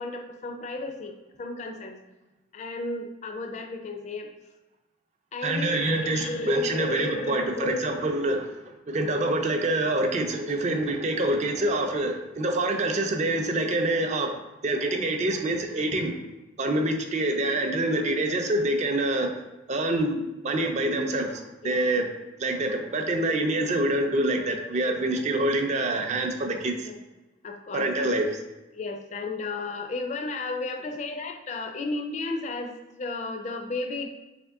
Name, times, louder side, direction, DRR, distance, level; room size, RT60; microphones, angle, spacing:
voice 1, 0.0-2.0 2.5-4.3 5.3-8.1 21.6-21.8 24.8-25.0 26.8-27.0 27.4-27.9 28.7-34.1, left 2 dB, 35° left, 4 dB, 0.4 m, -33 dB
voice 2, 5.4-8.5 8.9-14.3 14.6-16.1 16.6-19.3 19.7-22.1 22.4-26.8 27.7-28.3, right 1 dB, 35° right, 4 dB, 0.4 m, -26 dB
3.5 x 2.9 x 3.5 m, 1.1 s
head